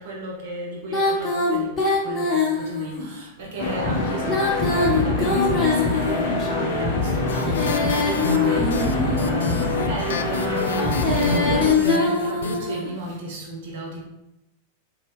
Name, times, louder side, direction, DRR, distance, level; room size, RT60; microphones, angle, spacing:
voice 1, 0.0-14.0, right 1 dB, 55° right, 0.9 m, -34 dB
Female singing, 0.9-3.0 4.2-6.5 7.3-9.4 10.7-12.9, left 3 dB, 15° left, 1.3 m, -23 dB
sound 1, 3.6-11.7, left 2 dB, 40° left, 0.8 m, -24 dB
sound 2, 7.3-12.6, left 3 dB, 65° left, 0.4 m, -31 dB
4.1 x 2.3 x 3.3 m
figure-of-eight pair, 90°, 0 cm